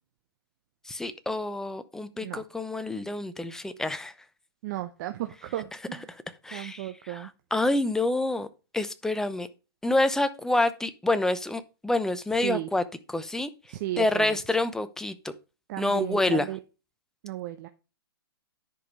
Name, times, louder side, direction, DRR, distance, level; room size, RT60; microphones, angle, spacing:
voice 1, 0.9-4.1 6.1-8.5 8.7-9.5 9.8-12.8 13.1-13.5 14.0-15.3 15.8-16.4, left 2 dB, 5° left, 0.8 m, -27 dB
voice 2, 2.1-2.5 4.6-6.1 6.5-7.3 12.4-12.7 13.7-14.4 15.7-16.6 17.2-17.7, right 15 dB, 45° right, 0.9 m, -34 dB
10.5 x 5.2 x 5.4 m
hypercardioid pair, 130°, 13 cm